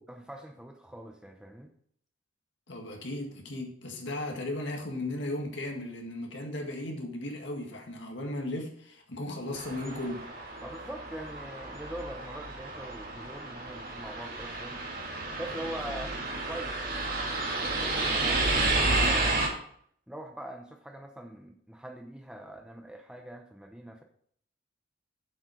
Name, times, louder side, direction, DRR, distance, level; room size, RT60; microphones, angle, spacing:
voice 1, 0.1-1.7 10.6-14.9 15.3-16.2 16.4-17.2 17.4-19.5 20.1-24.0, right 1 dB, 5° right, 3 dB, 0.8 m, -43 dB
voice 2, 2.7-10.3, left 1 dB, 60° left, 1 dB, 1.9 m, -36 dB
sound 1, 9.5-19.5, right 2 dB, 45° right, 2.1 m, -31 dB
7.7 x 7.1 x 4.9 m, 0.63 s
head